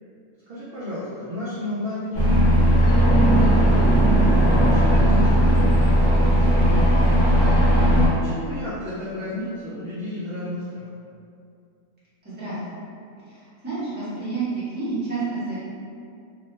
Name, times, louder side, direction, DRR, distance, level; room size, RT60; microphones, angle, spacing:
voice 1, 0.5-5.5 6.1-7.0 7.9-10.9, left 1 dB, 55° right, -10 dB, 0.6 m, -32 dB
sound 1, 2.1-8.1, right 1 dB, 55° left, 1.0 m, -17 dB
voice 2, 12.2-12.8 13.3-15.6, right 3 dB, 5° right, -13 dB, 0.9 m, -30 dB
3.0 x 2.1 x 3.1 m, 2.4 s
omnidirectional pair, 1.6 m